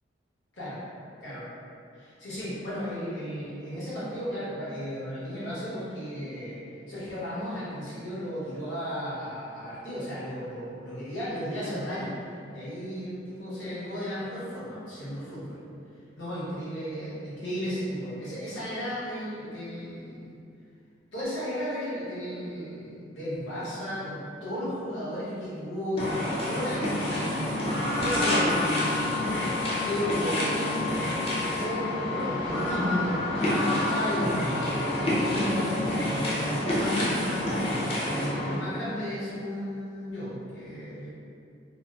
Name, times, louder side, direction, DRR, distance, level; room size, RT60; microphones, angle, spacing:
voice 1, 1.9-6.6 6.9-12.1 12.5-15.6 16.2-20.4 21.1-26.2 26.4-27.7 27.9-29.2 29.8-30.7 31.4-37.8 38.1-41.1, equal, 70° left, -11 dB, 1.0 m, -34 dB
sound 1, 26.0-38.5, left 1 dB, 30° left, 0.5 m, -27 dB
2.7 x 2.1 x 2.3 m, 2.5 s
head